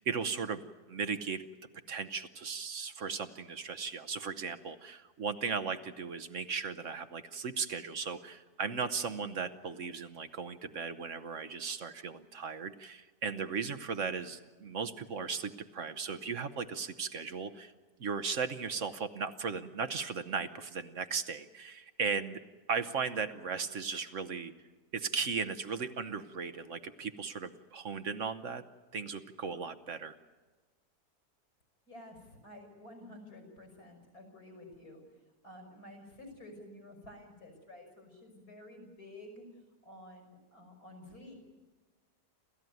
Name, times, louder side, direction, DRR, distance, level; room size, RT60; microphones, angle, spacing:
voice 1, 0.0-1.5 1.9-17.7 18.0-22.4 22.7-24.5 24.9-28.6 28.9-30.1, right 5 dB, 55° right, 10 dB, 1.2 m, -36 dB
voice 2, 31.9-35.0 35.4-39.4 39.8-41.3, left 1 dB, 80° left, 4 dB, 6.5 m, -51 dB
29.0 x 14.0 x 9.3 m, 1.3 s
omnidirectional pair, 1.6 m